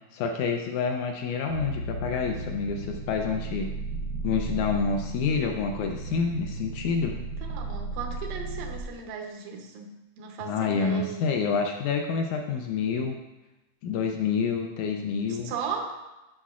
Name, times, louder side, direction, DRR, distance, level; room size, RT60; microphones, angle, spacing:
voice 1, 0.1-3.7 4.2-7.1 10.4-13.2 13.8-15.5, left 5 dB, 80° left, 3 dB, 1.8 m, -28 dB
sound 1, 1.5-8.8, right 2 dB, 65° right, 1.3 m, -35 dB
voice 2, 7.1-11.3 15.3-16.0, right 6 dB, 85° right, 2 dB, 2.6 m, -36 dB
10.0 x 5.4 x 2.4 m, 1.0 s
omnidirectional pair, 3.8 m